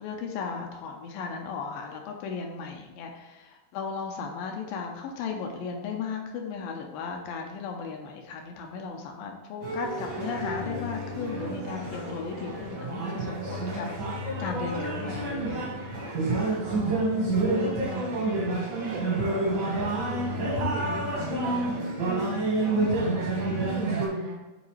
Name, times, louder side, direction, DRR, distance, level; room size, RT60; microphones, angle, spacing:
voice 1, 0.0-13.9 14.4-15.7 22.7-22.9, left 5 dB, 80° left, 2 dB, 2.3 m, -36 dB
sound 1, 9.6-24.1, right 2 dB, 55° right, 1.1 m, -29 dB
voice 2, 16.6-17.0 17.4-21.6 22.0-22.4 22.9-24.4, right 3 dB, 75° right, 0 dB, 1.9 m, -37 dB
9.6 x 3.9 x 3.2 m, 1.1 s
omnidirectional pair, 4.3 m